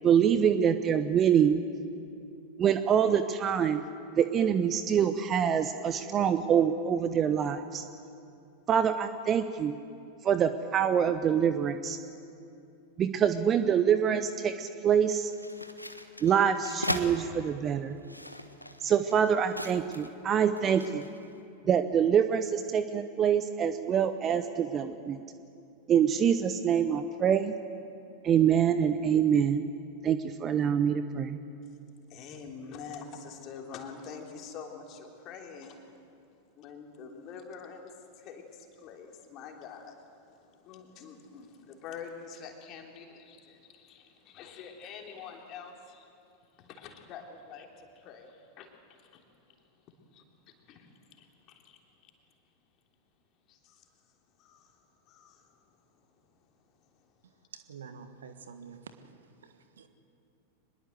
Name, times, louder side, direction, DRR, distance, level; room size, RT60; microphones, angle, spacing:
voice 1, 0.0-1.6 2.6-3.8 4.2-7.8 8.7-9.7 10.2-12.0 13.0-15.3 16.2-18.0 18.8-21.1 21.7-25.2 25.9-27.5 28.2-29.6 30.0-31.4, right 8 dB, 25° right, 11 dB, 0.8 m, -25 dB
sound 1, 15.3-17.1 17.9-20.2 20.6-21.2, equal, 90° left, 1.3 m, -38 dB
voice 2, 32.1-35.8 36.6-46.1 46.6-49.3 50.1-50.2 50.7-51.8 53.5-53.9 54.4-54.8 55.1-55.5, left 6 dB, 35° left, 2 dB, 3.3 m, -46 dB
voice 3, 57.5-58.9 59.4-59.9, right 6 dB, 65° right, 9 dB, 1.6 m, -47 dB
24.0 x 21.5 x 7.9 m, 2.6 s
figure-of-eight pair, 90°, 0 cm